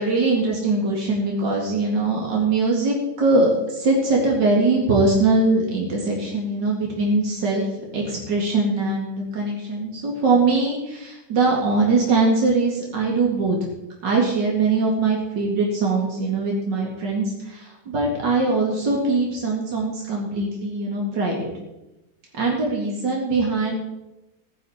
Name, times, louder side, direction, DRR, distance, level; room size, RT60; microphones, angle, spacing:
voice 1, 0.0-13.6 14.0-21.5 22.3-23.7, right 3 dB, 85° right, -1 dB, 2.8 m, -22 dB
15.5 x 11.0 x 4.3 m, 0.97 s
omnidirectional pair, 1.9 m